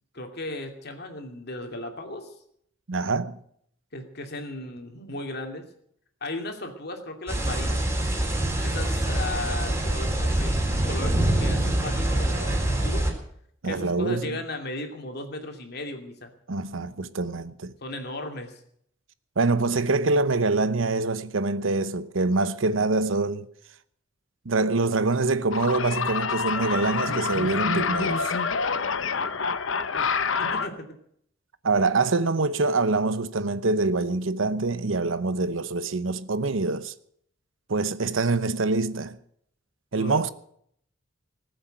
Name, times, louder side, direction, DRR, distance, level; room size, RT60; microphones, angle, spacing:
voice 1, 0.1-2.3 3.9-5.6 6.2-7.8 8.6-10.5 10.8-13.1 13.6-16.3 17.8-18.6 29.1-29.3 29.9-30.9 39.9-40.2, left 2 dB, 55° left, 2.7 m, -36 dB
voice 2, 2.9-3.4 13.6-14.4 16.5-17.7 19.4-23.5 24.4-28.3 31.6-36.9 37.7-39.2 39.9-40.3, right 3 dB, 80° right, 0.9 m, -25 dB
sound 1, 7.3-13.1, right 1 dB, 15° right, 4.0 m, -25 dB
sound 2, 25.5-30.7, left 5 dB, 75° left, 0.9 m, -27 dB
19.5 x 7.9 x 9.2 m
head